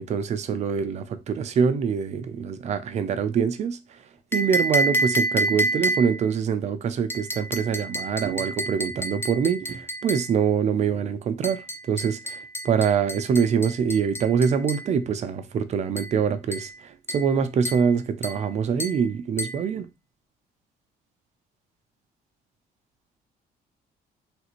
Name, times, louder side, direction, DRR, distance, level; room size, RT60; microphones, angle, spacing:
voice 1, 0.0-4.0 4.3-19.9, right 7 dB, 40° right, 0.5 m, -24 dB
sound 1, 4.3-6.3 7.1-10.3 11.4-14.9 16.0-16.2 16.5-16.8 17.1-17.4 17.6-17.9 18.2-18.5 18.8-19.0 19.4-19.6, right 1 dB, 15° left, 0.4 m, -29 dB
3.2 x 2.5 x 3.0 m
cardioid pair, 110°, 17 cm